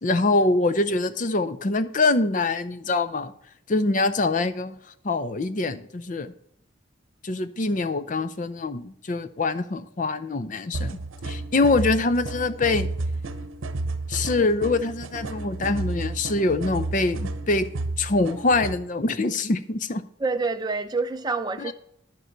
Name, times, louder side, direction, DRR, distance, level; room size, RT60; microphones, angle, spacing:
voice 1, 0.0-3.3 3.7-4.8 5.0-6.3 7.2-11.0 11.2-12.9 14.1-17.7 18.0-20.0 21.6-21.7, left 3 dB, 40° left, 0.5 m, -24 dB
sound 1, 10.7-18.8, right 2 dB, 90° right, 0.8 m, -32 dB
voice 2, 20.2-21.7, right 3 dB, 20° right, 0.5 m, -27 dB
10.5 x 6.5 x 4.5 m
head